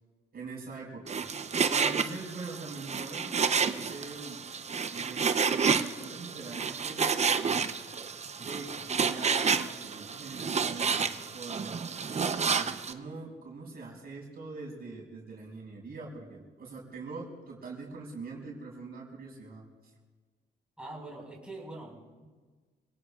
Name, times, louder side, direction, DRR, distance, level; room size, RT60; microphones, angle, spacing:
voice 1, 0.3-1.4 1.7-4.4 4.9-7.7 8.4-12.0 12.4-19.7, right 3 dB, 50° right, -2 dB, 5.6 m, -43 dB
Frying (food), 1.1-12.9, right 6 dB, 35° right, 0.8 m, -30 dB
voice 2, 20.8-22.3, right 2 dB, 5° right, -4 dB, 5.3 m, -44 dB
27.5 x 18.0 x 2.5 m, 1.4 s
cardioid pair, 90°, 20 cm